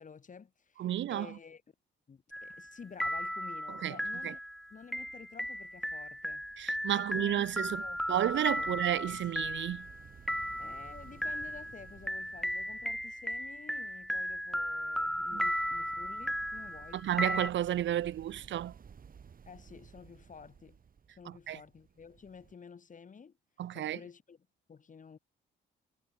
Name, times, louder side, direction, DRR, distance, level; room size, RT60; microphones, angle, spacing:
voice 1, 0.0-1.6 2.1-4.4 4.7-6.4 6.9-7.5 7.8-8.0 8.6-8.7 10.6-17.0 19.4-20.8 21.1-23.4 23.7-25.2, left 6 dB, 40° left, 4.3 m, -51 dB
voice 2, 0.8-1.3 3.8-3.9 4.2-4.3 6.6-7.8 8.1-9.9 15.3-15.4 16.9-18.7 21.5-21.6 23.6-24.0, right 12 dB, 70° right, 1.4 m, -31 dB
sound 1, 2.3-2.7 3.0-17.5, equal, ahead, 1.3 m, -36 dB
sound 2, 6.1-22.6, right 6 dB, 45° right, 4.6 m, -57 dB
cardioid pair, 90°, 20 cm